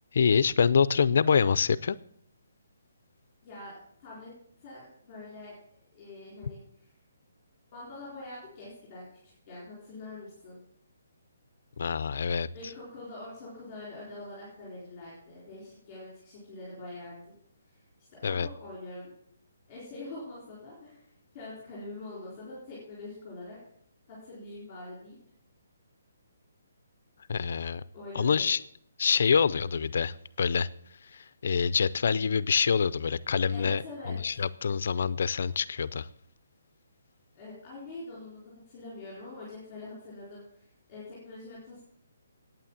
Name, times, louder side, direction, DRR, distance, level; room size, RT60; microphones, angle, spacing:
voice 1, 0.1-2.0 11.8-12.5 18.2-18.5 27.3-27.8 28.1-28.6 29.0-30.7 31.1-33.8 34.1-36.1, left 6 dB, 50° left, 17 dB, 0.4 m, -26 dB
voice 2, 3.4-4.3 4.6-5.5 5.9-6.9 7.7-9.1 9.5-10.6 12.5-17.4 17.7-17.8 18.2-19.1 19.7-23.6 24.1-25.2 27.9-28.5 33.5-34.4 37.3-41.8, left 2 dB, 15° left, -7 dB, 4.3 m, -44 dB
9.6 x 9.0 x 7.4 m, 0.67 s
hypercardioid pair, 175°, 0 cm